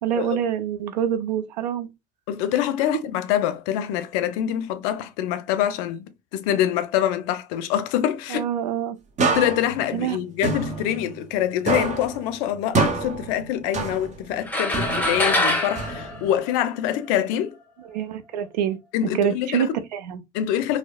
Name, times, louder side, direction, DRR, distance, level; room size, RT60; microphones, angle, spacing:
voice 1, 0.0-1.9 8.3-9.0 9.9-10.2 17.9-18.8 19.2-20.2, right 9 dB, 80° right, 0.4 m, -26 dB
voice 2, 2.3-8.5 9.3-17.5 18.9-19.8 20.3-20.8, left 11 dB, 65° left, 0.4 m, -25 dB
sound 1, 9.2-11.4 11.7-14.3 14.7-16.4, right 3 dB, 35° right, 0.7 m, -27 dB
sound 2, 14.5-17.1, left 1 dB, 5° left, 0.9 m, -25 dB
2.7 x 2.0 x 2.4 m
hypercardioid pair, 60°, 21 cm